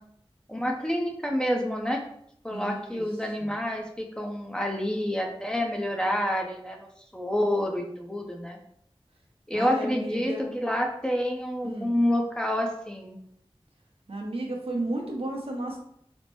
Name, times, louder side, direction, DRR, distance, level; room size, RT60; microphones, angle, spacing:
voice 1, 0.5-2.0 2.4-6.9 7.1-8.6 9.5-13.2, equal, 10° left, 1 dB, 0.6 m, -28 dB
voice 2, 2.5-3.0 3.4-3.5 9.5-10.5 11.6-12.0 14.1-15.8, right 2 dB, 75° right, -1 dB, 0.7 m, -33 dB
4.3 x 2.1 x 3.0 m, 0.72 s
wide cardioid pair, 40°, 10 cm